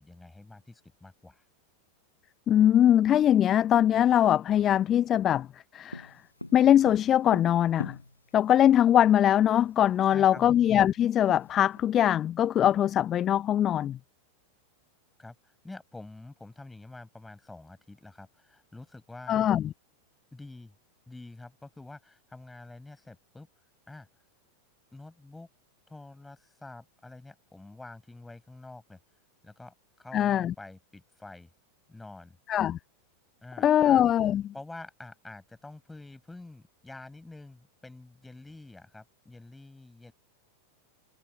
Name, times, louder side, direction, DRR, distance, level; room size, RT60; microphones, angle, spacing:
voice 1, 0.0-1.4 10.1-10.6 15.2-19.5 20.3-20.7 21.1-23.5 23.9-24.1 24.9-25.5 25.9-29.0 29.4-31.5 31.9-32.4 33.4-34.0 34.5-40.1, left 2 dB, 5° left, 6.6 m, -47 dB
voice 2, 2.5-5.5 5.7-6.1 6.5-8.0 8.3-14.0 19.3-19.7 30.1-30.5 32.5-32.8 33.6-34.5, left 11 dB, 30° left, 0.4 m, -22 dB
Tap, 5.9-8.5 9.5-9.6 9.9-10.0 10.3-11.8, left 2 dB, 85° left, 6.5 m, -42 dB
figure-of-eight pair, 90°, 0 cm